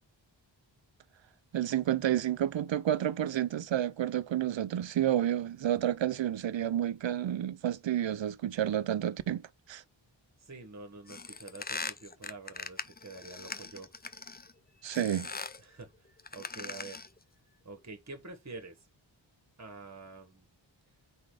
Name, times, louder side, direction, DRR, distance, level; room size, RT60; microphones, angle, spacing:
voice 1, 1.5-9.4 9.7-9.8 14.8-15.3, right 11 dB, 70° right, 0.6 m, -30 dB
voice 2, 10.4-13.9 15.6-16.1 16.3-17.0 17.6-18.8 19.6-20.5, right 3 dB, 35° right, 1.4 m, -47 dB
sound 1, 11.1-14.5 14.9-15.6 16.2-17.2, left 4 dB, 20° left, 0.5 m, -41 dB
4.9 x 4.0 x 4.8 m
wide cardioid pair, 55°, 47 cm